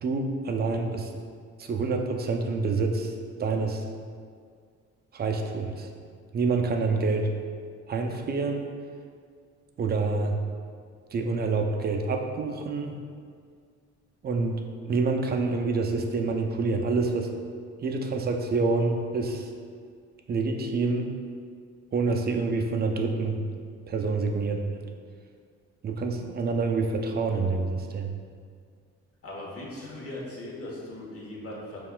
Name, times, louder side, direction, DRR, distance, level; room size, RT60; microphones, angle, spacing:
voice 1, 0.0-1.1 1.6-3.1 3.4-3.8 5.1-5.9 6.3-7.3 7.9-8.7 9.8-10.4 11.1-13.0 14.2-17.3 17.8-19.5 20.3-21.1 21.9-23.4 23.9-24.8 25.8-28.1, right 3 dB, 35° right, 4 dB, 0.4 m, -27 dB
voice 2, 29.2-31.8, left 1 dB, 50° left, -4 dB, 1.0 m, -39 dB
5.5 x 2.3 x 2.2 m, 2.1 s
cardioid pair, 90°, 30 cm